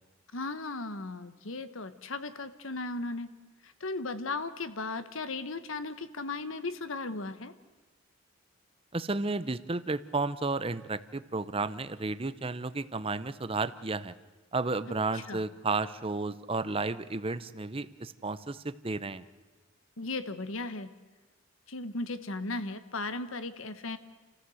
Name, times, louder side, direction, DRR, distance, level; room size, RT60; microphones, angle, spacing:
voice 1, 0.3-3.3 3.6-7.5 15.1-15.4 20.0-20.9 21.7-24.0, left 3 dB, 70° left, 12 dB, 1.2 m, -36 dB
voice 2, 8.9-14.1 14.5-19.2, right 3 dB, 25° right, 14 dB, 0.7 m, -32 dB
29.5 x 15.0 x 7.8 m, 1.2 s
head